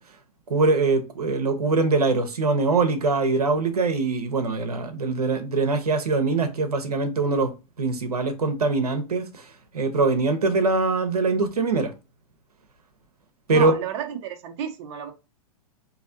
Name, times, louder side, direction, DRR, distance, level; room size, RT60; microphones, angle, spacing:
voice 1, 0.5-7.5 7.8-9.5 9.7-11.9 13.5-13.7, right 3 dB, 85° right, 0.8 m, -23 dB
voice 2, 13.5-15.1, right 9 dB, 45° right, 0.7 m, -31 dB
4.1 x 2.8 x 2.5 m
hypercardioid pair, 110°, 19 cm